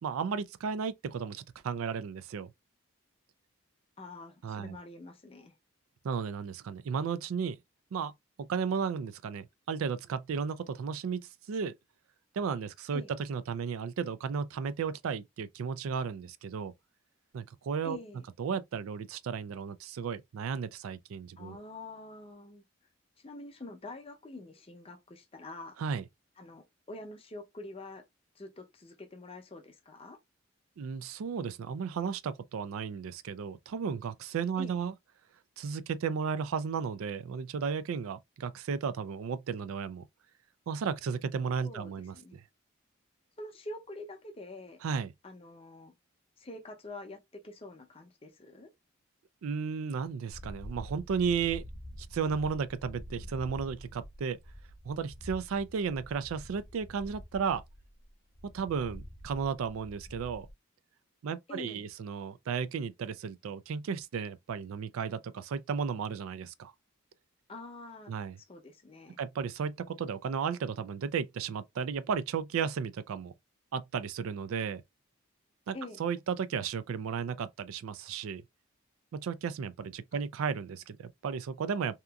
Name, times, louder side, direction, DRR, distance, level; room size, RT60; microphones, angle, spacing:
voice 1, 0.0-2.5 4.4-4.8 6.0-7.6 7.9-8.1 8.4-11.2 11.5-11.7 12.3-13.0 13.3-16.7 17.3-18.0 18.4-21.6 25.8-26.0 30.8-34.9 35.6-40.0 40.7-42.4 44.8-45.1 49.4-51.6 52.0-54.4 54.8-57.6 58.5-60.5 61.2-66.7 68.1-68.4 69.2-73.3 73.7-74.8 75.7-78.4 79.1-82.0, right 6 dB, 80° right, 0.3 m, -34 dB
voice 2, 4.0-5.5 12.9-13.1 17.8-18.2 21.4-22.6 23.2-25.8 26.4-28.0 28.4-30.2 34.6-34.8 41.6-42.3 43.4-44.8 45.2-45.9 46.4-48.7 61.5-61.9 67.5-68.1 68.5-69.2 75.7-76.0, left 2 dB, 25° left, 0.6 m, -46 dB
sound 1, 50.3-60.5, equal, 50° left, 1.0 m, -47 dB
2.8 x 2.4 x 2.2 m
head